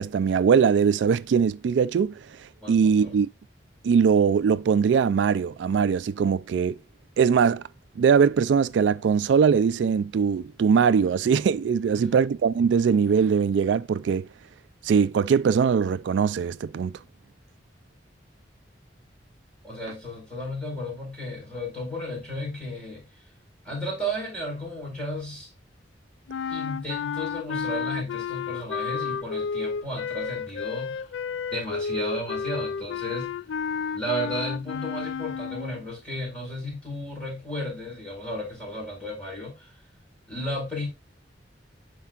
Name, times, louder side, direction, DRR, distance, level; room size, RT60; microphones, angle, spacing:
voice 1, 0.0-3.3 3.8-6.8 7.2-7.6 8.0-14.3 14.8-16.9, right 6 dB, 85° right, 0.3 m, -21 dB
voice 2, 2.6-3.1 11.9-12.2 19.6-23.1 23.6-25.5 26.5-31.0 31.5-33.4 33.9-39.7 40.3-40.9, equal, 5° left, 4.7 m, -34 dB
sound 1, 26.3-35.8, left 6 dB, 90° left, 0.3 m, -31 dB
11.5 x 4.6 x 2.4 m
head